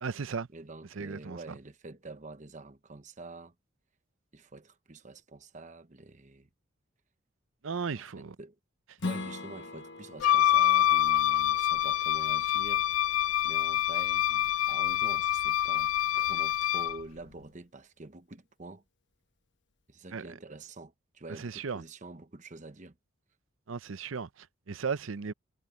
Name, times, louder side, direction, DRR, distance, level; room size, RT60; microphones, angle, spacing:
voice 1, 0.0-0.5 1.0-1.4 7.6-8.4 20.1-20.2 21.4-21.8 23.7-25.3, right 5 dB, 80° right, 0.6 m, -35 dB
voice 2, 0.5-3.5 4.3-6.5 7.8-8.6 9.0-12.9 13.4-18.8 19.9-22.9, right 2 dB, 40° right, 1.0 m, -47 dB
Strum, 9.0-14.2, left 3 dB, 60° left, 1.1 m, -42 dB
Wind instrument woodwind instrument, 10.2-17.0, left 12 dB, 90° left, 0.3 m, -26 dB
head